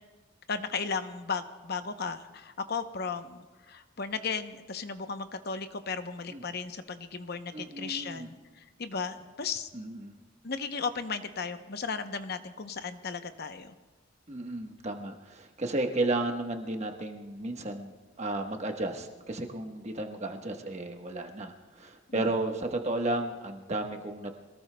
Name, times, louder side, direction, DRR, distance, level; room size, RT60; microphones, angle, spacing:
voice 1, 0.5-8.4 8.8-9.7 10.4-13.7 22.1-22.2, left 5 dB, 50° left, 9 dB, 0.7 m, -35 dB
voice 2, 7.5-8.3 9.7-10.1 14.3-24.3, right 2 dB, 35° right, 4 dB, 1.2 m, -33 dB
26.0 x 18.5 x 2.2 m, 1.3 s
head